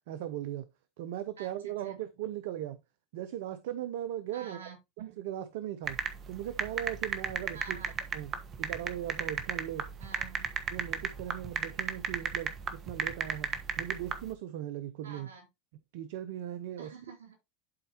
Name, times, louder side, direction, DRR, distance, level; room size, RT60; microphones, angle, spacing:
voice 1, 0.1-0.7 1.0-2.8 3.1-4.6 5.0-6.0 6.3-7.8 8.1-9.9 10.7-15.3 15.9-16.9, right 12 dB, 70° right, 0.6 m, -38 dB
voice 2, 1.4-2.0 4.3-4.8 7.5-7.9 10.0-10.4 15.0-15.5 16.8-17.3, right 6 dB, 85° right, 3.1 m, -48 dB
sound 1, 5.9-14.2, right 6 dB, 40° right, 1.2 m, -33 dB
11.5 x 4.3 x 2.9 m
hypercardioid pair, 85°, 0 cm